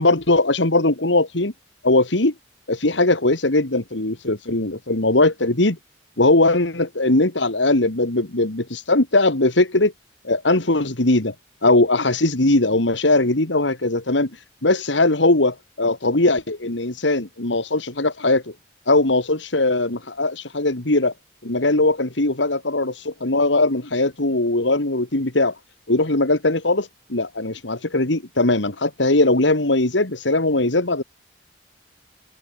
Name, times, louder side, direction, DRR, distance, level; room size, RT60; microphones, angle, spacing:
voice 1, 0.0-1.5 1.8-2.3 2.7-5.8 6.2-9.9 10.2-11.3 11.6-14.3 14.6-18.4 18.9-21.1 21.4-25.6 25.9-31.0, left 2 dB, 85° left, 2.5 m, -20 dB
head